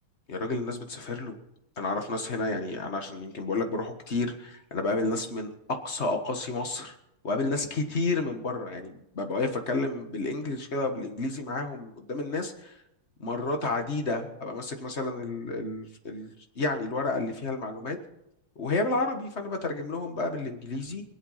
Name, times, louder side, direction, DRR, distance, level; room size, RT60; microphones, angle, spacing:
voice 1, 0.3-1.4 1.8-5.5 5.8-6.9 7.2-12.8 13.2-18.0 18.6-21.0, left 3 dB, 35° left, 5 dB, 1.5 m, -31 dB
24.5 x 8.2 x 5.7 m, 0.83 s
omnidirectional pair, 2.4 m